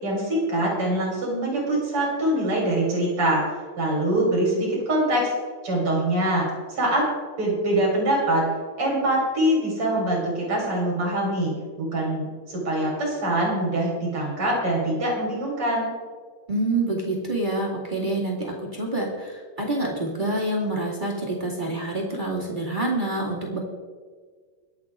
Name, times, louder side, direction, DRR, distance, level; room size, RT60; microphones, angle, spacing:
voice 1, 0.0-3.4 3.8-5.3 5.6-7.1 7.4-8.5 8.8-11.5 11.8-15.9, right 1 dB, 35° right, -3 dB, 5.2 m, -24 dB
voice 2, 16.5-23.6, right 2 dB, 20° right, -3 dB, 1.5 m, -27 dB
24.0 x 8.6 x 3.7 m, 1.6 s
omnidirectional pair, 4.6 m